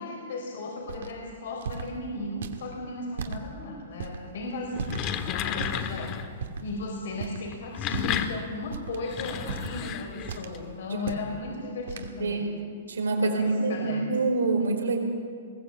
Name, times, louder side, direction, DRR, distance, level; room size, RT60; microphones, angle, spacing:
voice 1, 0.0-4.9 5.2-6.2 6.6-12.5 13.2-14.1, left 2 dB, 70° left, 1 dB, 4.0 m, -36 dB
sound 1, 0.9-1.1 1.6-1.9 2.4-2.6 3.1-3.4 4.0-4.2 4.8-5.1 5.6-5.9 6.4-6.7 7.1-7.5 7.8-8.3 8.7-9.0 9.5-9.9 10.3-10.6 11.0-11.3 11.9-12.1, right 6 dB, 75° right, 2.3 m, -36 dB
sound 2, 4.6-6.3 7.5-10.6, left 8 dB, 35° left, 1.6 m, -32 dB
voice 2, 12.2-12.6 12.9-15.0, right 3 dB, 90° right, 2 dB, 5.0 m, -26 dB
21.5 x 16.5 x 8.4 m, 2.1 s
hypercardioid pair, 135°, 0 cm